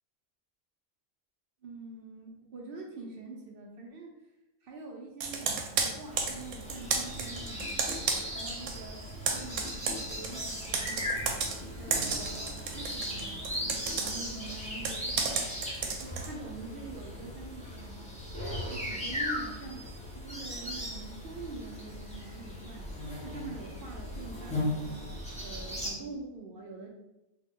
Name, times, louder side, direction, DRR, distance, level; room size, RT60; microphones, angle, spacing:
voice 1, 1.6-4.1 4.6-7.7 8.4-11.3 11.8-13.4 14.0-15.6 16.0-18.1 18.6-22.9 23.2-25.1 25.4-26.9, right 3 dB, 60° right, 0 dB, 0.6 m, -45 dB
Computer keyboard, 5.2-8.8 9.1-16.3, right 5 dB, 85° right, 1.0 m, -33 dB
sound 1, 6.1-25.9, left 1 dB, 10° left, 0.4 m, -38 dB
sound 2, 6.6-14.7, left 1 dB, 85° left, 1.5 m, -49 dB
3.2 x 2.1 x 3.5 m, 0.95 s
omnidirectional pair, 1.5 m